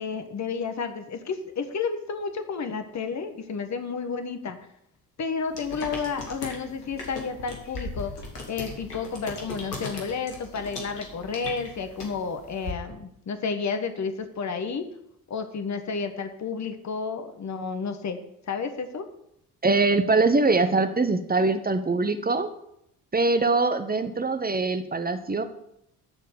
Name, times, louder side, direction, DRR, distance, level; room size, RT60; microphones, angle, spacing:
voice 1, 0.0-4.6 5.2-8.1 8.5-14.8 15.3-18.2 18.5-19.0, left 5 dB, 35° left, 8 dB, 1.4 m, -31 dB
sound 1, 5.5-12.7, left 3 dB, 90° left, 1.6 m, -38 dB
voice 2, 19.6-22.5 23.1-25.4, right 3 dB, 20° right, 9 dB, 0.9 m, -23 dB
13.0 x 4.5 x 6.9 m, 0.79 s
hypercardioid pair, 45°, 45 cm